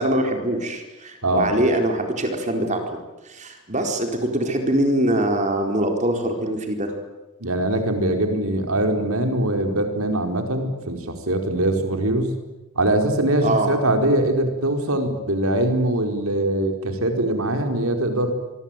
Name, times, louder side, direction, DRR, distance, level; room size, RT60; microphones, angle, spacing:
voice 1, 0.0-3.0 3.2-6.9 13.4-13.7, right 1 dB, 35° right, 4 dB, 4.2 m, -23 dB
voice 2, 1.2-1.6 7.4-12.3 12.7-18.3, right 1 dB, 75° right, 5 dB, 4.7 m, -22 dB
25.5 x 24.0 x 9.2 m, 1.1 s
head